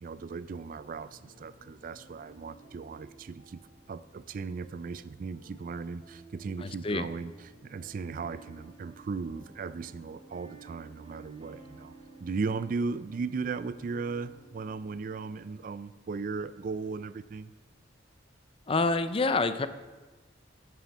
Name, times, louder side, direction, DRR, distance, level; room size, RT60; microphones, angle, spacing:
voice 1, 0.0-7.3 7.6-11.9 12.2-17.5, right 4 dB, 50° right, 16 dB, 0.4 m, -37 dB
sound 1, 0.9-15.5, right 3 dB, 35° right, 1.9 m, -54 dB
voice 2, 6.6-7.1 18.7-19.7, left 3 dB, 30° left, 12 dB, 0.5 m, -27 dB
9.4 x 6.9 x 7.1 m, 1.3 s
head